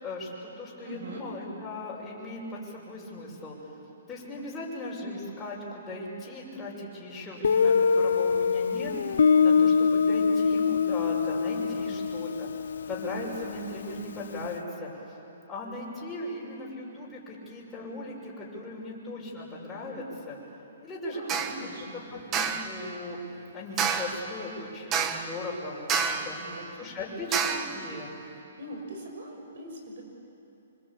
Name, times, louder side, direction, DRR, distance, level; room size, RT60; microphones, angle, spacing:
voice 1, 0.0-3.6 4.1-12.5 12.9-14.9 15.5-20.4 20.8-21.5 21.9-23.3 23.5-26.4 26.8-28.1, left 1 dB, 10° left, -5 dB, 6.1 m, -38 dB
voice 2, 0.8-1.3 11.8-11.9 21.1-22.0 26.2-26.9 28.6-30.0, right 1 dB, 65° right, 3 dB, 6.1 m, -42 dB
Guitar, 7.4-14.1, left 5 dB, 75° left, 0.8 m, -24 dB
sound 1, 21.3-21.6 22.3-22.7 23.8-24.2 24.9-25.4 25.9-26.4 27.3-27.8, right 6 dB, 20° right, 1.3 m, -28 dB
26.5 x 25.0 x 8.6 m, 2.9 s
hypercardioid pair, 155°, 0 cm